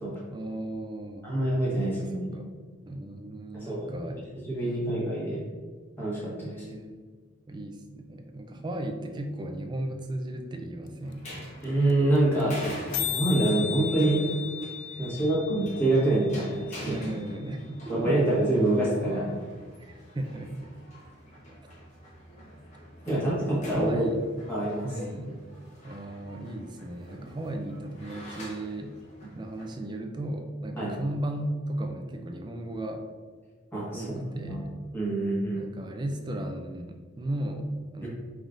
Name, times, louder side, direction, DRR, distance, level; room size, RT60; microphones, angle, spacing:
voice 1, 0.3-1.3 1.8-2.6 2.9-4.5 6.4-6.9 7.5-11.3 12.4-12.9 14.9-15.1 16.9-18.2 19.9-20.7 23.1-23.4 23.7-24.3 24.8-25.4 25.8-29.0 29.3-33.0 33.9-34.7 35.6-38.1, right 1 dB, 20° right, 5 dB, 0.4 m, -36 dB
voice 2, 1.2-2.4 3.5-4.0 4.5-5.4 6.0-6.6 11.6-12.6 13.0-14.2 15.0-17.0 17.9-19.3 23.1-24.1 24.5-24.9 30.8-30.9 33.7-34.2 34.4-34.6 34.9-35.6 38.0-38.1, right 1 dB, 10° left, -7 dB, 1.4 m, -26 dB
sound 1, 10.9-11.0 11.1-11.2 11.4-11.6 11.9-12.0 12.2-12.4 12.7-12.8 12.9-16.9, left 9 dB, 85° left, 0.4 m, -35 dB
sound 2, 11.0-29.7, equal, 35° left, 1.1 m, -45 dB
5.2 x 3.7 x 2.5 m, 1.5 s
head